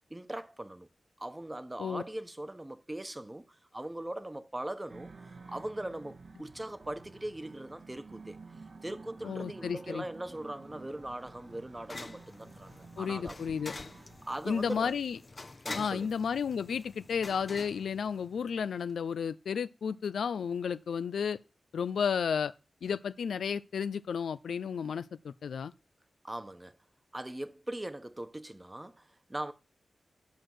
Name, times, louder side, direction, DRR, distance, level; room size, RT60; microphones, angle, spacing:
voice 1, 0.1-0.9 1.2-8.4 8.8-13.7 14.2-14.9 15.6-16.1 26.2-26.8 27.1-29.5, right 1 dB, 20° right, 1.2 m, -40 dB
sound 1, 4.9-15.0, right 4 dB, 70° right, 1.8 m, -52 dB
voice 2, 9.2-10.0 13.0-13.7 14.5-15.2 15.8-21.4 21.7-22.5 22.8-25.7, left 7 dB, 90° left, 0.5 m, -32 dB
sound 2, 10.3-18.7, left 3 dB, 40° left, 0.8 m, -47 dB
11.5 x 4.6 x 7.9 m
cardioid pair, 60°, 0 cm